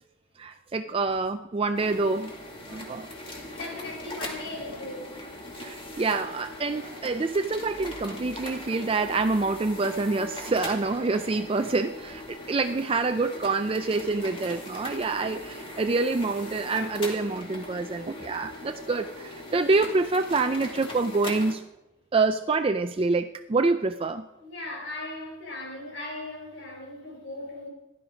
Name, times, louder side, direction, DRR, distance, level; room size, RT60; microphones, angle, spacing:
voice 1, 0.4-2.3 2.7-3.1 5.6-21.6 22.1-24.3, right 3 dB, 25° right, 8 dB, 0.4 m, -26 dB
sound 1, 1.7-21.5, left 1 dB, 25° left, 2.5 m, -40 dB
voice 2, 3.3-5.2 24.4-27.7, left 2 dB, 65° left, 1 dB, 4.6 m, -38 dB
16.0 x 11.5 x 5.1 m, 0.99 s
head